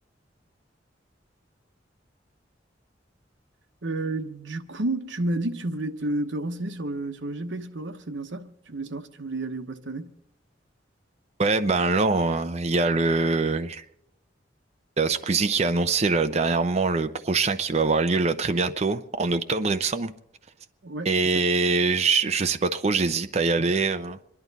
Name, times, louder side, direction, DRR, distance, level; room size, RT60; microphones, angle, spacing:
voice 1, 3.8-10.1 20.8-21.4, right 2 dB, 80° right, 1.1 m, -31 dB
voice 2, 11.4-13.8 15.0-20.1 21.0-24.2, right 3 dB, 35° right, 0.6 m, -23 dB
26.5 x 11.0 x 4.1 m
head